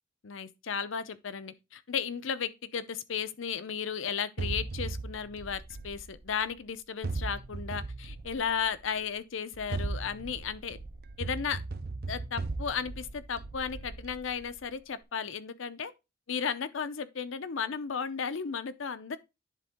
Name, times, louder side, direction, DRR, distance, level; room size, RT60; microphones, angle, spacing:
voice 1, 0.2-10.8 11.2-11.6 12.1-15.9 16.3-19.2, left 6 dB, 85° left, 0.6 m, -34 dB
sound 1, 4.4-6.5 7.0-8.9 9.5-14.6, right 3 dB, 50° right, 0.5 m, -38 dB
10.5 x 3.8 x 3.5 m
head